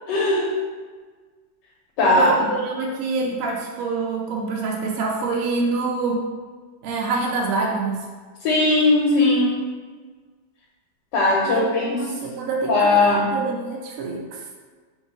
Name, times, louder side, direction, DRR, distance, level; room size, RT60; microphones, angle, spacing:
voice 1, 0.1-0.5 2.0-2.3 8.4-9.6 11.1-12.0 12.7-13.4, left 2 dB, 80° left, -3 dB, 1.3 m, -18 dB
voice 2, 2.0-6.2 6.8-8.0 11.4-14.4, right 3 dB, 70° right, -1 dB, 0.8 m, -26 dB
3.1 x 2.9 x 4.4 m, 1.5 s
omnidirectional pair, 1.9 m